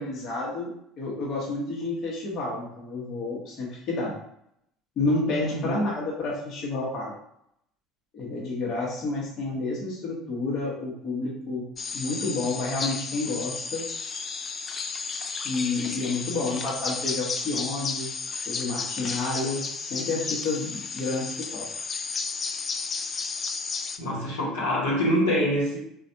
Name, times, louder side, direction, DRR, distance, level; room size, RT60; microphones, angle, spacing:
voice 1, 0.0-4.1 5.0-7.1 8.1-11.6 11.9-13.9 15.4-18.1 18.5-21.7, left 2 dB, 45° left, -4 dB, 1.1 m, -30 dB
voice 2, 5.5-5.8 24.0-25.8, equal, 75° left, -5 dB, 1.2 m, -25 dB
sound 1, 11.8-24.0, left 5 dB, 30° left, 0.3 m, -33 dB
4.1 x 2.4 x 2.7 m, 0.75 s
figure-of-eight pair, 65°, 0 cm